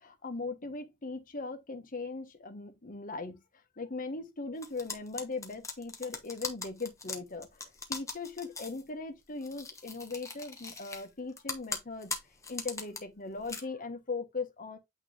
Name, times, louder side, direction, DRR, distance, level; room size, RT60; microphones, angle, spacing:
voice 1, 0.0-3.4 3.8-12.2 12.5-14.8, left 3 dB, 45° left, 1.2 m, -39 dB
sound 1, 4.6-8.8 9.4-11.1 11.4-13.0 13.4-13.6, left 4 dB, 15° left, 1.1 m, -39 dB
8.6 x 3.2 x 3.4 m
head